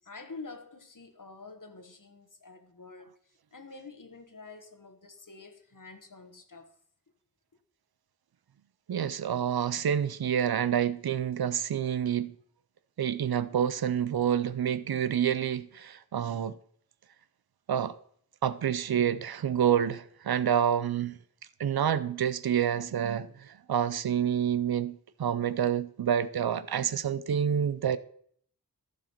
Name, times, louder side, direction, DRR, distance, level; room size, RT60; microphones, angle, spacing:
voice 1, 0.0-6.7, left 3 dB, 55° left, 1.3 m, -48 dB
voice 2, 8.9-12.3 13.0-16.5 17.7-17.9 18.4-21.2 21.6-28.0, right 9 dB, 70° right, 0.5 m, -28 dB
14.5 x 5.0 x 4.4 m
wide cardioid pair, 55°, 39 cm